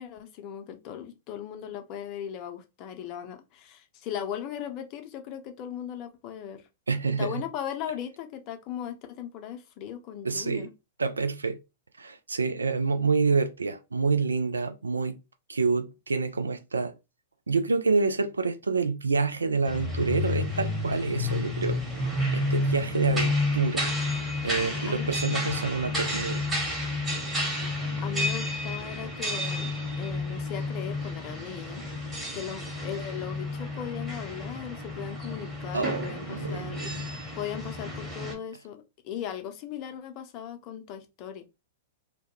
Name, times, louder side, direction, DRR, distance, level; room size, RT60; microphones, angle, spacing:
voice 1, 0.0-6.6 7.2-10.7 24.9-25.1 28.0-37.0 37.3-41.4, left 9 dB, 40° left, 0.5 m, -38 dB
voice 2, 6.9-7.4 10.2-10.7 11.0-11.6 12.0-15.2 15.5-16.9 17.5-21.8 22.3-23.9 24.4-26.4 35.7-37.0, right 4 dB, 85° right, 0.3 m, -27 dB
sound 1, 19.6-38.3, left 2 dB, 15° right, 1.2 m, -31 dB
2.2 x 2.1 x 2.9 m
figure-of-eight pair, 105°, 0 cm